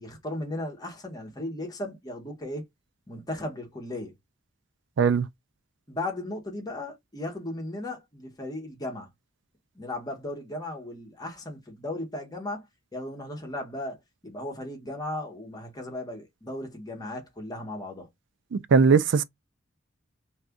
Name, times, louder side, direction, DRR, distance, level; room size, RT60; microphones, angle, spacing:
voice 1, 0.0-2.6 3.1-4.1 5.9-9.1 9.7-12.7 12.9-18.1, left 1 dB, 20° left, 1.1 m, -36 dB
voice 2, 18.5-19.2, right 5 dB, 60° right, 0.4 m, -20 dB
2.7 x 2.4 x 3.5 m
head